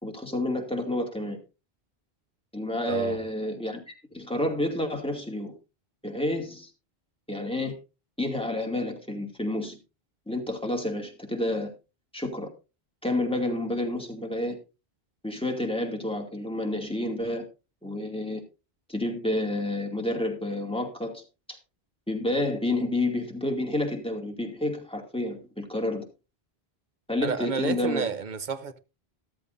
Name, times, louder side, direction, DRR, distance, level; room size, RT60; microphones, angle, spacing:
voice 1, 0.0-1.4 2.5-5.5 6.0-6.7 7.3-7.8 8.2-9.8 10.3-11.7 12.1-12.5 13.0-14.6 15.2-17.5 17.8-18.4 18.9-21.2 21.5-21.6 22.1-26.0 27.1-28.1, left 1 dB, 5° left, 2.4 m, -29 dB
voice 2, 2.9-3.2 27.2-28.8, right 5 dB, 50° right, 0.9 m, -30 dB
13.5 x 13.0 x 2.7 m
omnidirectional pair, 1.1 m